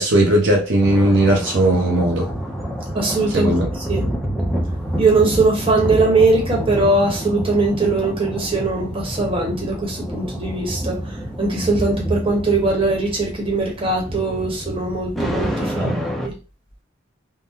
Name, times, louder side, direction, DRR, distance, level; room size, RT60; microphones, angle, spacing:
voice 1, 0.0-2.3 3.3-3.7 15.8-16.0, right 1 dB, 65° right, 0.7 m, -17 dB
sound 1, 0.8-16.3, equal, ahead, 0.5 m, -28 dB
voice 2, 2.9-3.5 3.8-4.0 5.0-15.9 16.2-16.3, right 3 dB, 30° right, 1.1 m, -20 dB
3.6 x 2.1 x 2.7 m
head